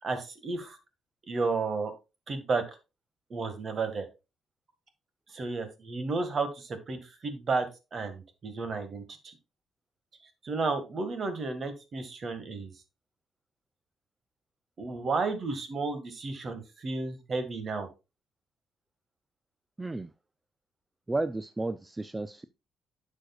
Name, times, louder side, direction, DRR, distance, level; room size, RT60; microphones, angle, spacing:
voice 1, 0.0-0.8 1.3-1.9 2.3-2.6 3.3-4.1 5.3-9.4 10.4-12.7 14.8-17.9, right 4 dB, 45° right, 9 dB, 1.8 m, -32 dB
voice 2, 19.8-20.1 21.1-22.4, right 2 dB, 15° right, 13 dB, 0.4 m, -32 dB
10.0 x 6.4 x 2.4 m, 0.27 s
cardioid pair, 90°, 0 cm